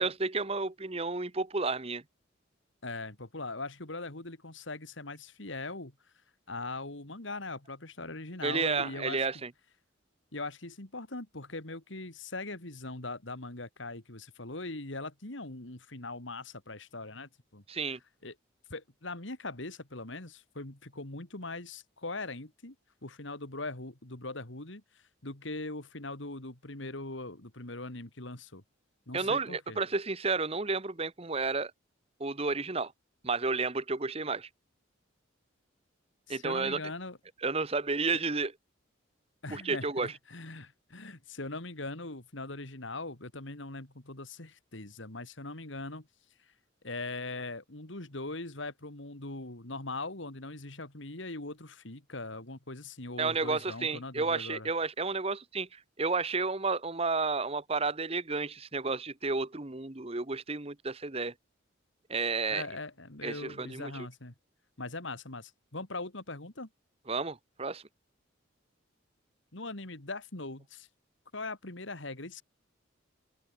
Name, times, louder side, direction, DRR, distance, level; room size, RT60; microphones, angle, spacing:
voice 1, 0.0-2.0 8.4-9.5 17.7-18.0 29.1-31.7 32.2-32.9 33.2-34.5 36.3-36.8 37.4-38.5 39.5-40.1 53.2-61.3 62.1-62.6 63.2-64.1 67.1-67.8, right 4 dB, 30° right, 1.1 m, -31 dB
voice 2, 2.8-5.9 6.5-9.3 10.3-17.6 18.2-18.3 18.7-22.7 23.0-28.6 29.1-29.8 36.3-37.2 38.1-38.2 39.4-46.1 46.8-54.7 62.5-64.3 64.8-66.7 69.5-70.9 71.3-72.4, left 2 dB, 70° left, 2.9 m, -41 dB
open air
head